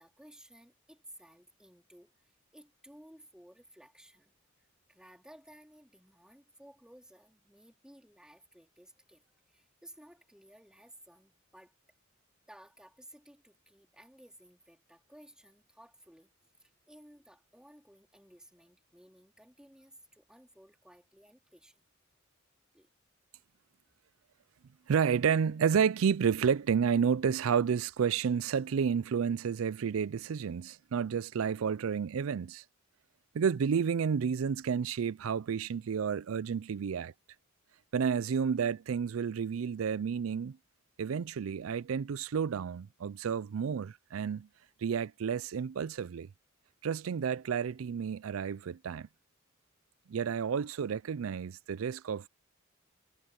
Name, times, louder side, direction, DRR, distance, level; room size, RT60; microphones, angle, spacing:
voice 1, 0.0-4.3 4.6-11.7 12.5-16.3 16.6-21.8 22.7-22.9, right 1 dB, 5° right, 3.7 m, -57 dB
voice 2, 24.9-32.6 33.3-37.1 37.9-40.6 41.0-44.5 44.8-46.3 46.8-49.1 50.1-52.3, right 7 dB, 80° right, 0.4 m, -30 dB
head